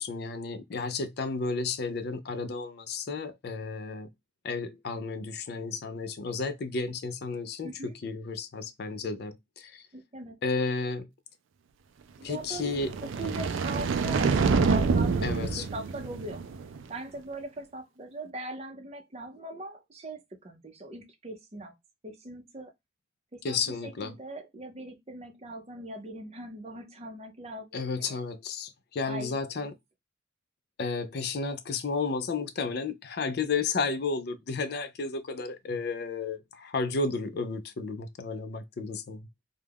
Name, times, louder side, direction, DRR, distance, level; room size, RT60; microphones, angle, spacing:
voice 1, 0.0-4.1 4.4-9.9 10.4-11.1 12.2-12.9 15.2-15.6 23.4-24.2 27.7-29.7 30.8-39.3, left 4 dB, 55° left, 0.4 m, -32 dB
voice 2, 7.6-8.0 9.9-10.4 12.2-16.4 16.9-21.7 22.0-22.7 23.3-28.2 29.0-29.7, right 1 dB, 35° right, 0.5 m, -41 dB
sound 1, 12.6-16.8, right 4 dB, 85° right, 0.4 m, -27 dB
2.3 x 2.1 x 3.3 m
head